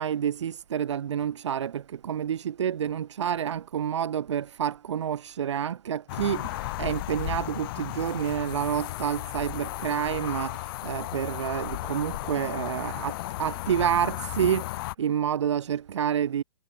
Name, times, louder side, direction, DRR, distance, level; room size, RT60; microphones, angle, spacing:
voice 1, 0.0-16.4, right 9 dB, 80° right, 3.7 m, -29 dB
sound 1, 6.1-14.9, left 17 dB, 50° left, 6.2 m, -34 dB
hypercardioid pair, 145°, 15 cm